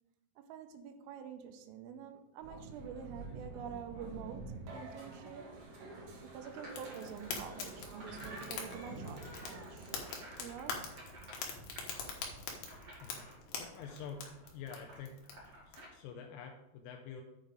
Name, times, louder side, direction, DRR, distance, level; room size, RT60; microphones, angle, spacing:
voice 1, 0.4-5.5 6.2-9.9 10.4-10.8, right 8 dB, 85° right, 7 dB, 3.2 m, -47 dB
sound 1, 2.4-10.2, right 2 dB, 70° right, 3.9 m, -48 dB
sound 2, 4.9-15.8, right 1 dB, 35° right, 2.7 m, -56 dB
Fire, 6.7-15.8, left 5 dB, 65° left, 3.1 m, -44 dB
voice 2, 13.6-15.1 15.7-17.2, left 6 dB, 85° left, 3 dB, 3.1 m, -47 dB
9.1 x 5.4 x 5.0 m, 1.0 s
omnidirectional pair, 6.0 m